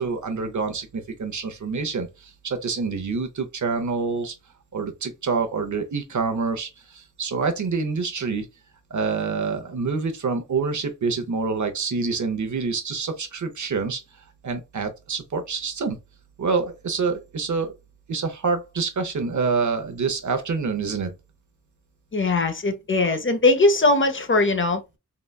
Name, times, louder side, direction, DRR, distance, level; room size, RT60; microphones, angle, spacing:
voice 1, 0.0-4.3 4.7-8.5 8.9-14.0 14.4-16.0 16.4-17.7 18.1-21.1, right 4 dB, 65° right, 0.7 m, -27 dB
voice 2, 22.1-24.8, left 2 dB, 40° left, 0.6 m, -20 dB
3.8 x 2.1 x 2.2 m
cardioid pair, 40°, 31 cm